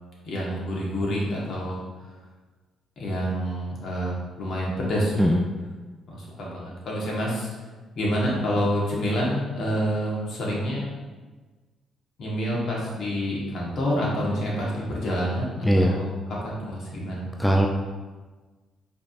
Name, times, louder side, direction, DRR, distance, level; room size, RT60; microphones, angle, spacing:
voice 1, 0.2-1.8 3.0-5.2 6.1-7.5 7.9-10.8 12.2-17.3, equal, 70° left, -4 dB, 1.4 m, -28 dB
voice 2, 15.6-16.0 17.4-17.7, equal, 5° left, 2 dB, 0.3 m, -19 dB
5.0 x 3.5 x 2.5 m, 1.3 s
cardioid pair, 90°, 0 cm